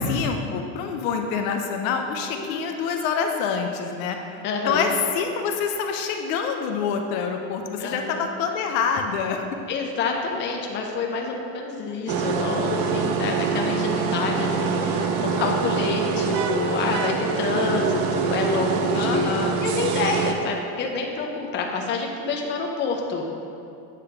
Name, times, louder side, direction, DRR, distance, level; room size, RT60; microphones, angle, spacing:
voice 1, 0.1-4.2 4.7-9.6 18.9-19.6, left 6 dB, 70° left, 4 dB, 0.8 m, -26 dB
voice 2, 4.4-4.9 7.8-8.2 9.7-23.4, left 4 dB, 25° left, 1 dB, 0.7 m, -27 dB
sound 1, 12.1-20.3, right 6 dB, 50° right, 0.6 m, -25 dB
8.4 x 3.3 x 5.8 m, 2.7 s
supercardioid pair, 135°, 43 cm